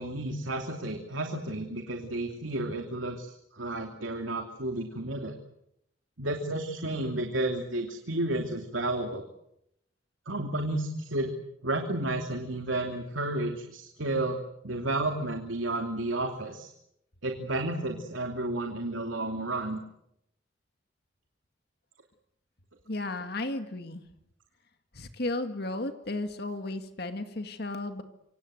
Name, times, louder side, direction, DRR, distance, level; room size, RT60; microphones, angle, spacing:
voice 1, 0.0-5.4 6.2-9.3 10.3-11.3 11.6-14.4 14.6-16.7 17.2-19.8, right 2 dB, 85° right, 4 dB, 2.9 m, -32 dB
voice 2, 22.9-24.0 24.9-28.0, left 2 dB, 55° left, 7 dB, 2.0 m, -34 dB
27.0 x 25.5 x 7.9 m, 0.80 s
head